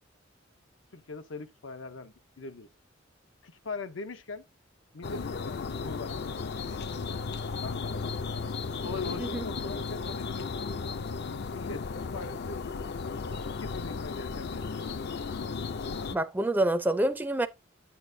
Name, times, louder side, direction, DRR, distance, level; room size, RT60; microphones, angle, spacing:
voice 1, 0.9-2.7 3.4-4.4 4.9-7.2 7.6-8.1 8.8-10.6 11.5-11.8 12.1-12.6 13.6-14.6, left 3 dB, 90° left, 0.8 m, -41 dB
sound 1, 5.0-16.2, left 4 dB, 60° left, 0.5 m, -35 dB
voice 2, 16.1-17.5, right 1 dB, 10° right, 0.4 m, -27 dB
8.8 x 7.0 x 2.6 m
head